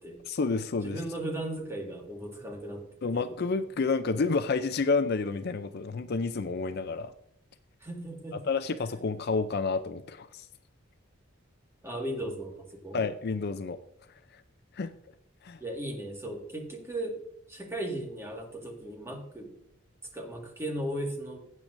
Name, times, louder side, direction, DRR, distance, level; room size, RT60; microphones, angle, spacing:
voice 1, 0.3-1.0 3.0-7.1 8.3-10.5 12.9-13.8 14.7-14.9 15.4-15.6, left 4 dB, 50° left, 11 dB, 0.5 m, -29 dB
voice 2, 0.8-2.9 3.1-3.3 7.8-8.4 11.8-13.0 15.6-17.2 17.5-19.5 20.1-21.4, right 1 dB, 10° right, 1 dB, 1.8 m, -36 dB
16.0 x 8.6 x 2.6 m, 0.70 s
head